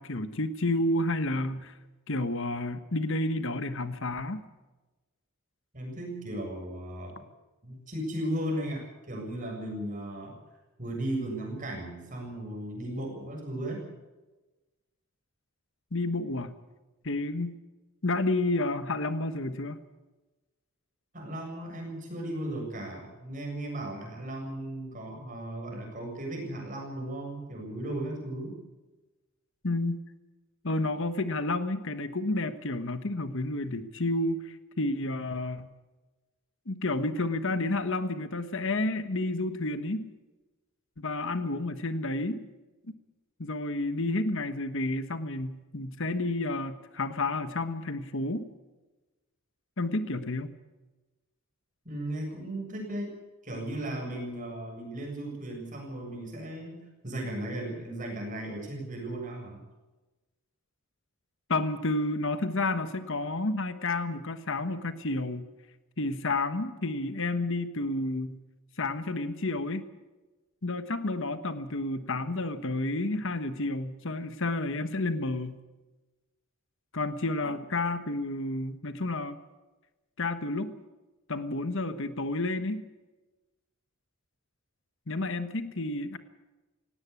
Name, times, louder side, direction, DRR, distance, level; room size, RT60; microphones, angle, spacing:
voice 1, 0.0-1.7 2.1-4.5 15.9-16.5 17.0-17.5 18.0-19.8 29.6-30.0 30.6-35.7 36.7-40.1 41.0-42.4 43.4-48.4 49.8-50.5 61.5-65.5 66.0-68.4 68.8-69.8 70.6-75.6 76.9-79.4 80.2-80.8 81.3-82.9 85.1-86.2, left 2 dB, 60° left, 11 dB, 1.3 m, -30 dB
voice 2, 5.7-7.1 7.6-10.4 10.8-13.9 21.1-28.6 51.8-53.1 53.4-59.6, right 1 dB, 35° right, 1 dB, 7.4 m, -36 dB
19.0 x 17.5 x 8.4 m, 1.1 s
head